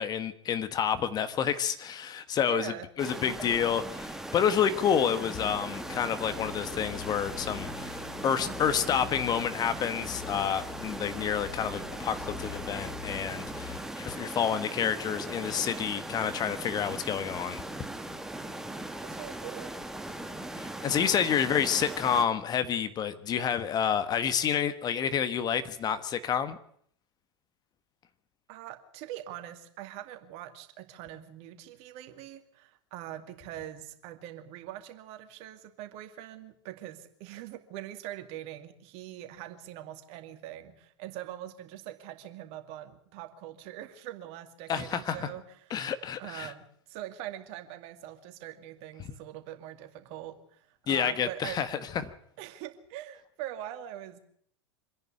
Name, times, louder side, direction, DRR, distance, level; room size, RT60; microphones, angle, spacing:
voice 1, 0.0-2.7 3.0-17.6 20.6-26.6 44.7-45.3 45.7-46.5 50.9-51.8, left 8 dB, 30° left, 11 dB, 1.3 m, -29 dB
voice 2, 2.5-2.9 19.0-19.7 28.5-45.9 46.2-51.6 52.4-54.2, right 12 dB, 45° right, 8 dB, 2.4 m, -43 dB
sound 1, 3.0-22.2, right 1 dB, 5° right, 1.5 m, -39 dB
sound 2, 5.3-13.8, left 10 dB, 45° left, 2.4 m, -45 dB
25.5 x 10.5 x 10.0 m, 0.66 s
figure-of-eight pair, 95°, 14 cm